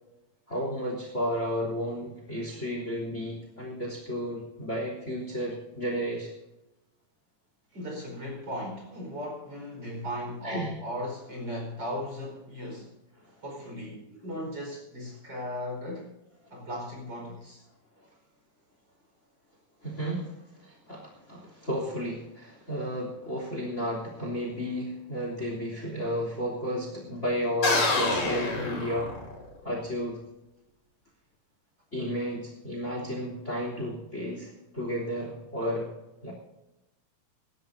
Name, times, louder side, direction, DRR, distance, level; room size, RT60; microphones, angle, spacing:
voice 1, 0.5-6.3 10.4-10.7 19.8-29.1 29.6-30.2 31.9-35.9 36.2-36.3, equal, 20° left, 3.5 m, -33 dB
voice 2, 7.7-13.0 13.4-16.1 16.5-17.6, equal, 35° right, 5.4 m, -37 dB
sound 1, 27.6-29.6, left 2 dB, 85° left, 4.7 m, -27 dB
25.0 x 12.5 x 2.8 m
omnidirectional pair, 3.6 m